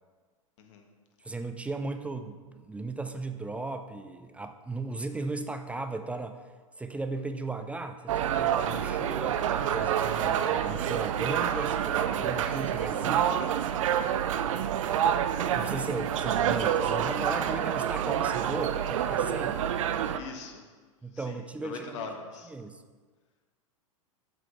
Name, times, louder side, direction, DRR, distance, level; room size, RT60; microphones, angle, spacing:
voice 1, 1.2-6.4 6.8-13.5 15.5-19.6 21.0-22.1 22.5-22.8, right 3 dB, 5° right, 8 dB, 0.4 m, -36 dB
sound 1, 8.1-20.2, right 9 dB, 65° right, 0.5 m, -28 dB
voice 2, 20.1-20.6 21.1-22.5, left 5 dB, 60° left, 3 dB, 1.4 m, -42 dB
7.5 x 4.8 x 5.9 m, 1.4 s
hypercardioid pair, 95°, 18 cm